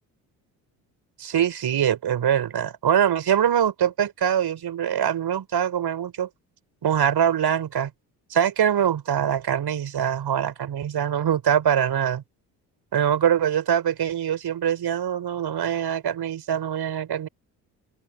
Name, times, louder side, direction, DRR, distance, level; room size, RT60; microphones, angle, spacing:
voice 1, 1.2-6.3 6.8-7.9 8.3-12.2 12.9-17.3, right 9 dB, 55° right, 6.3 m, -23 dB
open air
hypercardioid pair, 55°, 48 cm